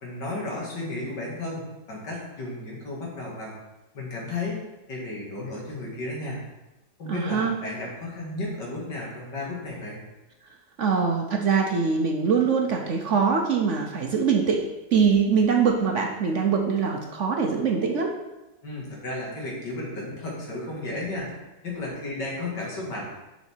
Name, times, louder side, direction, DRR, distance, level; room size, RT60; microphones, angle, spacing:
voice 1, 0.0-3.6 3.9-4.6 4.9-6.4 7.0-10.0 18.6-21.3 21.6-23.0, left 2 dB, 85° left, -3 dB, 2.7 m, -33 dB
voice 2, 7.1-7.5 10.8-18.1, right 5 dB, 55° right, 2 dB, 0.9 m, -23 dB
7.0 x 5.8 x 4.5 m, 1.0 s
omnidirectional pair, 1.8 m